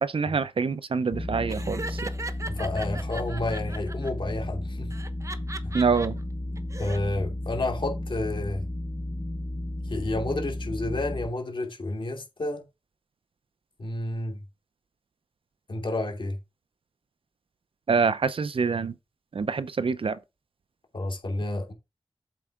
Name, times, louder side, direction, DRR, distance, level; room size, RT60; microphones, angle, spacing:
voice 1, 0.0-2.1 5.7-6.2 17.9-18.9 19.3-20.2, right 5 dB, 65° right, 0.6 m, -26 dB
sound 1, 1.1-11.3, left 1 dB, 20° left, 0.7 m, -33 dB
Laughter, 1.5-4.1 4.9-6.1 6.6-7.0, right 2 dB, 30° right, 0.8 m, -38 dB
voice 2, 2.5-4.9 5.6-5.7 6.8-8.6 9.9-12.6 13.8-14.4 15.7-16.4 20.9-21.7, left 2 dB, 60° left, 2.7 m, -30 dB
7.7 x 4.7 x 3.7 m
wide cardioid pair, 75°, 10 cm